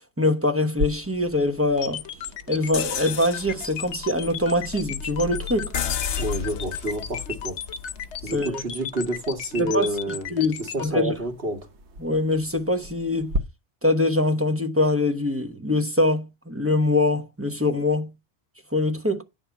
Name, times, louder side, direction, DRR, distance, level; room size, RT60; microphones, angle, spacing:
voice 1, 0.2-2.0 2.5-5.7 8.3-8.6 9.6-11.1 12.0-13.3 13.8-18.1 18.7-19.2, left 2 dB, 15° right, 1.1 m, -23 dB
sound 1, 0.7-13.4, equal, 80° right, 1.3 m, -38 dB
sound 2, 1.8-10.9, left 8 dB, 90° left, 1.1 m, -34 dB
sound 3, 2.7-8.5, left 7 dB, 70° left, 0.9 m, -33 dB
voice 2, 6.2-7.6 8.2-10.3 10.6-11.6, right 1 dB, 65° right, 2.1 m, -28 dB
9.8 x 3.7 x 7.1 m
omnidirectional pair, 1.1 m